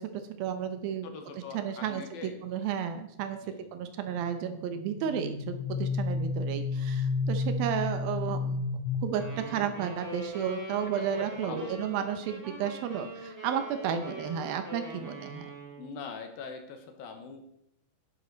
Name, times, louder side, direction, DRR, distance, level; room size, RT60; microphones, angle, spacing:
voice 1, 0.0-1.1 1.5-3.4 3.7-8.6 9.0-15.4, right 8 dB, 75° right, 8 dB, 2.6 m, -33 dB
voice 2, 1.0-2.4 3.4-3.7 11.0-12.0 15.8-17.4, left 4 dB, 70° left, 5 dB, 2.9 m, -43 dB
sound 1, 4.3-9.8, left 3 dB, 25° left, 3.8 m, -32 dB
sound 2, 9.1-16.0, right 2 dB, 5° right, 4.7 m, -43 dB
11.0 x 11.0 x 4.0 m, 0.74 s
omnidirectional pair, 4.5 m